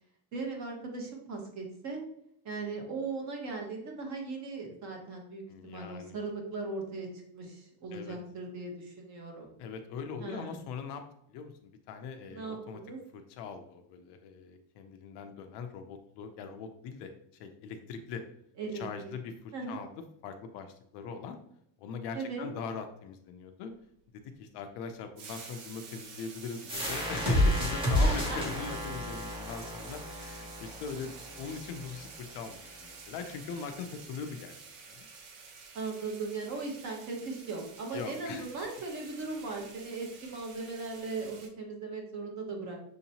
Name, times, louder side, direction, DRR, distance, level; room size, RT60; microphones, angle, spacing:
voice 1, 0.3-2.0 2.4-7.1 7.3-9.5 10.2-10.6 12.3-13.0 18.6-18.8 19.5-19.8 22.1-22.5 28.0-28.4 35.7-42.8, right 3 dB, 35° right, 1 dB, 0.9 m, -38 dB
voice 2, 5.5-6.2 7.9-8.2 9.6-11.0 11.3-12.8 13.1-17.1 17.4-18.2 18.7-19.9 20.2-21.4 21.8-23.7 24.1-31.1 31.4-34.5 34.9-35.1 37.9-38.5, left 6 dB, 55° left, 6 dB, 0.5 m, -41 dB
sound 1, 25.2-41.5, right 5 dB, 75° right, 1.0 m, -49 dB
sound 2, 26.7-32.1, left 1 dB, 10° right, 0.5 m, -30 dB
6.3 x 2.8 x 2.7 m, 0.72 s
cardioid pair, 175°, 50 cm